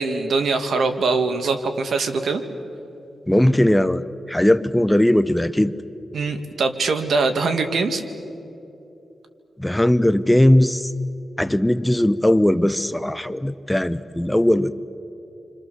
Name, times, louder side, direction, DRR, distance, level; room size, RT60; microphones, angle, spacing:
voice 1, 0.0-2.4 6.1-8.0, right 4 dB, 70° right, 7 dB, 2.0 m, -22 dB
voice 2, 3.3-5.7 9.6-10.9 11.4-14.8, left 1 dB, 10° left, 13 dB, 0.7 m, -18 dB
28.5 x 25.5 x 7.0 m, 2.9 s
cardioid pair, 85°, 0 cm